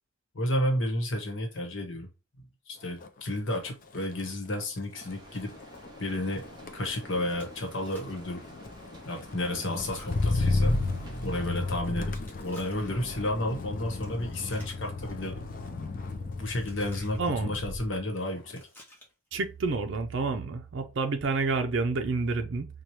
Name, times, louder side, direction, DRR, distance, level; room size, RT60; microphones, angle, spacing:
voice 1, 0.3-2.1 2.7-5.5 6.0-6.5 6.7-8.4 9.0-10.8 11.2-15.4 16.4-18.6, left 1 dB, 70° left, 1.0 m, -32 dB
Motor vehicle (road), 2.9-3.2 3.5-18.0 18.4-18.8, left 2 dB, 40° left, 0.5 m, -34 dB
Chewing mastication, 4.8-5.5 5.7-5.8 6.3-6.5 7.3-8.2 9.5-11.1 12.1-13.0 13.9-15.1 15.4-15.8 16.4-17.3 18.4-19.3, left 1 dB, 10° left, 1.2 m, -55 dB
sound 1, 4.9-11.5, right 2 dB, 20° right, 0.7 m, -53 dB
voice 2, 17.2-17.6 19.3-22.7, right 3 dB, 65° right, 0.4 m, -29 dB
4.5 x 2.3 x 2.8 m
head